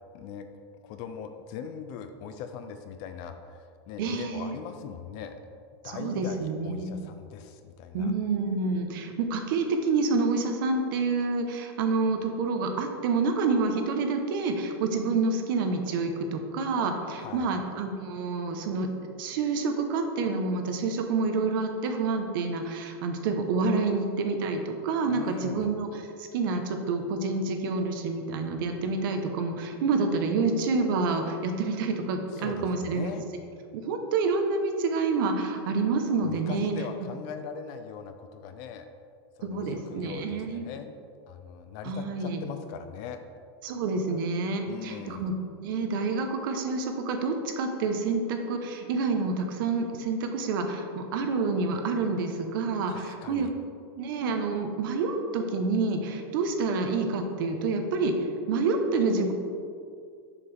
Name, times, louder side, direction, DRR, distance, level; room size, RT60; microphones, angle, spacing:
voice 1, 0.1-0.5 0.8-5.4 5.8-8.1 17.2-17.5 25.1-25.7 32.3-33.2 36.2-38.9 39.4-40.9 41.3-43.2 44.7-45.3 52.9-53.5, left 7 dB, 35° left, 8 dB, 0.4 m, -40 dB
voice 2, 4.0-4.6 5.8-7.0 7.9-18.9 19.2-25.9 26.2-33.1 33.7-36.7 39.4-40.6 41.8-42.4 43.6-45.3 45.6-53.5 54.0-58.1 58.5-59.3, right 4 dB, 55° right, 5 dB, 0.9 m, -28 dB
7.2 x 6.7 x 3.4 m, 2.3 s
supercardioid pair, 170°, 14 cm